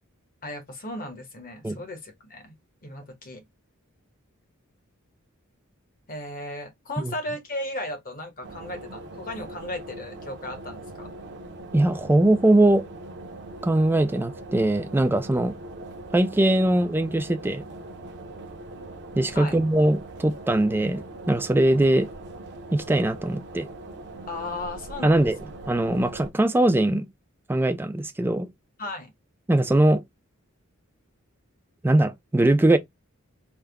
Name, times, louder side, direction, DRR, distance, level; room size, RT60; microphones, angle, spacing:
voice 1, 0.4-2.5 2.8-3.4 6.1-11.1 19.3-19.6 24.3-25.5 28.8-29.1, left 1 dB, 40° left, 1.1 m, -36 dB
sound 1, 8.4-26.3, right 2 dB, 55° right, 0.7 m, -41 dB
voice 2, 11.7-12.9 13.6-15.6 16.1-17.6 19.2-22.1 22.7-23.7 25.0-25.4 25.7-27.1 27.5-28.5 29.5-30.0 31.8-32.8, right 1 dB, 10° right, 0.4 m, -21 dB
3.4 x 2.2 x 3.3 m
head